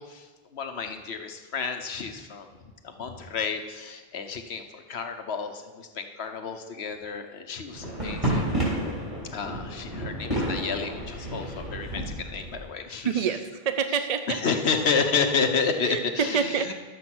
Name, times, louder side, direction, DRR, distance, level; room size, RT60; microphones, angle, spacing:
voice 1, 0.0-2.5 2.8-8.5 9.3-13.2 14.3-16.7, left 5 dB, 85° left, 6 dB, 1.2 m, -30 dB
sound 1, 7.7-12.7, right 1 dB, 30° right, 3.6 m, -31 dB
voice 2, 13.0-14.4 15.9-16.7, right 7 dB, 50° right, 9 dB, 0.5 m, -27 dB
11.5 x 7.3 x 6.1 m, 1.3 s
omnidirectional pair, 1.0 m